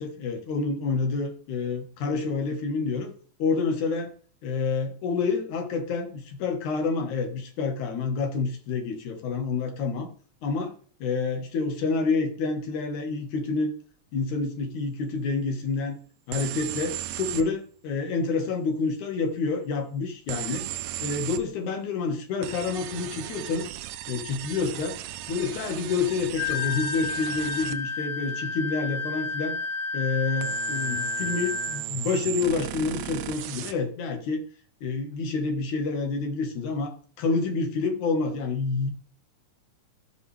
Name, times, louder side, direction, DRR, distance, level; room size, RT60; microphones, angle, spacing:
voice 1, 0.0-3.1 3.4-4.1 4.4-10.1 10.4-10.7 11.0-13.7 14.1-16.0 16.3-20.7 21.0-23.7 24.1-25.0 25.3-29.6 29.9-34.4 34.8-38.9, left 4 dB, 85° left, 4 dB, 2.9 m, -28 dB
sound 1, 16.3-17.5 20.3-21.4 22.4-27.8 30.4-33.7, right 13 dB, 80° right, 1.7 m, -36 dB
Wind instrument woodwind instrument, 26.4-31.8, left 4 dB, 55° left, 1.0 m, -31 dB
15.0 x 5.4 x 3.3 m, 0.43 s
omnidirectional pair, 3.3 m